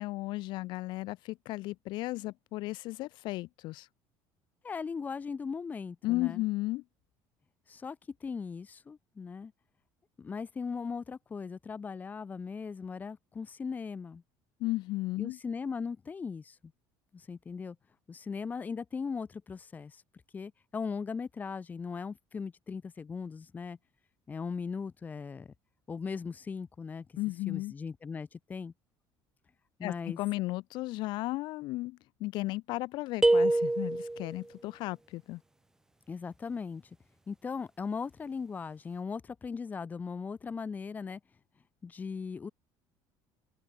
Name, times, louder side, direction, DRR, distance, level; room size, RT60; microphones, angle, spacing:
voice 1, 0.0-3.9 6.0-6.8 14.6-15.4 27.2-27.7 29.8-35.4, left 19 dB, 60° left, 1.4 m, -34 dB
voice 2, 4.6-6.4 7.7-9.5 10.2-14.2 15.2-16.7 17.1-17.8 18.1-20.0 20.3-23.8 24.3-25.5 25.9-27.1 27.5-28.7 29.8-30.2 36.1-36.9 37.3-41.2 41.8-42.5, left 5 dB, 20° left, 1.4 m, -38 dB
sound 1, 33.2-34.4, right 2 dB, 5° right, 0.4 m, -25 dB
open air
cardioid pair, 155°, 9 cm